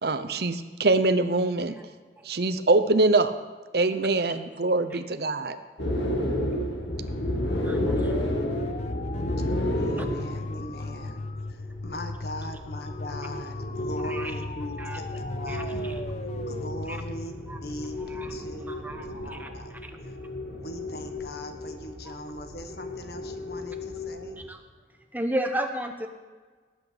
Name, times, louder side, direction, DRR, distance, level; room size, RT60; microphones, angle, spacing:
voice 1, 0.0-1.7 2.2-3.3 3.7-5.6, right 2 dB, 60° right, 11 dB, 0.7 m, -23 dB
sound 1, 5.8-24.5, left 1 dB, 85° left, 1.8 m, -33 dB
sound 2, 6.5-18.3, left 3 dB, 35° left, 0.3 m, -37 dB
voice 2, 7.6-8.1 10.0-10.1 14.0-14.3 14.8-15.0 15.5-16.0 16.9-17.0 17.5-17.6 18.1-18.3 18.7-19.5 19.8-20.0 24.5-24.6 25.1-26.1, right 1 dB, 10° right, 5 dB, 0.9 m, -33 dB
voice 3, 9.4-11.2 11.5-15.8 16.4-19.7 20.0-20.1 20.6-24.4, left 1 dB, 60° left, 6 dB, 1.4 m, -40 dB
18.5 x 8.5 x 5.0 m, 1.5 s
head